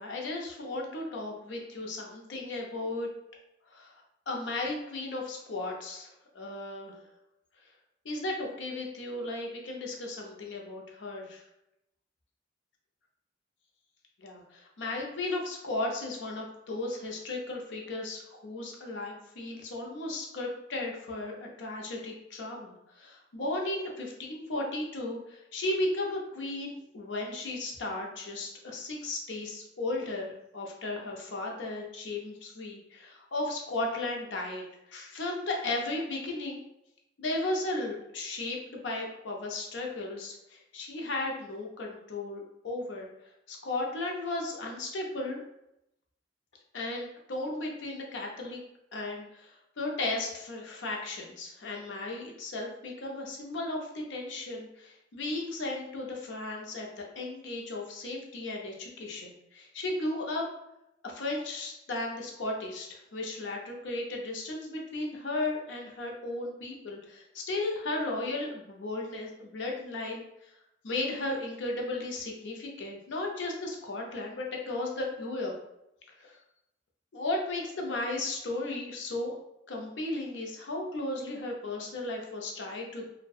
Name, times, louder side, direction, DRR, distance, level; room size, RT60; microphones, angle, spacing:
voice 1, 0.0-3.1 3.7-3.9 4.3-6.1 6.3-6.9 8.0-11.4 14.2-36.6 37.2-43.1 43.5-45.4 46.7-48.6 48.9-60.4 61.0-70.5 70.8-75.5 76.2-76.4 77.1-79.4 79.7-83.1, left 2 dB, 85° left, 0 dB, 0.5 m, -35 dB
2.6 x 2.1 x 2.3 m, 0.85 s
head